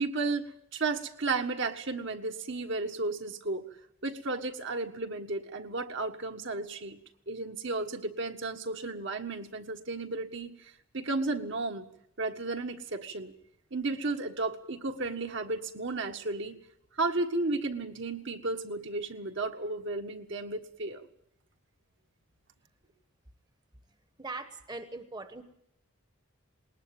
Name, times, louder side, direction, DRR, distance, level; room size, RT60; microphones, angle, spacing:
voice 1, 0.0-3.7 4.0-7.0 7.3-11.9 12.2-13.3 13.7-16.6 17.0-21.0, right 3 dB, 60° right, 5 dB, 1.6 m, -33 dB
voice 2, 24.2-25.4, right 3 dB, 20° right, 9 dB, 1.2 m, -41 dB
20.5 x 19.5 x 9.0 m, 0.73 s
head